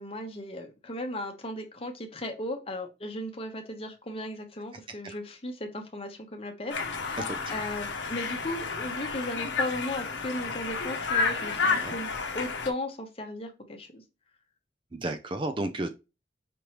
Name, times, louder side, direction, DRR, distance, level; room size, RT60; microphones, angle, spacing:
voice 1, 0.0-14.0, left 1 dB, 30° left, 0.9 m, -36 dB
Conversation, 6.7-12.7, left 4 dB, 85° left, 0.9 m, -31 dB
voice 2, 7.2-7.5 11.6-11.9 14.9-15.9, right 2 dB, 25° right, 0.4 m, -33 dB
5.2 x 3.1 x 3.0 m
head